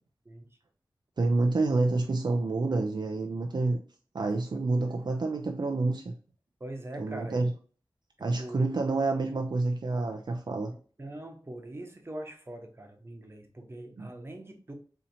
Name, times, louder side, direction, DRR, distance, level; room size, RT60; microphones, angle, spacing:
voice 1, 1.2-3.8 4.1-6.1 7.0-7.5 8.2-10.7 14.0-14.1, right 3 dB, 65° right, 3 dB, 0.4 m, -28 dB
voice 2, 4.5-5.0 6.6-7.5 8.4-8.8 11.0-14.7, right 1 dB, 30° right, 3 dB, 0.8 m, -42 dB
4.2 x 2.8 x 2.7 m, 0.42 s
wide cardioid pair, 70°, 8 cm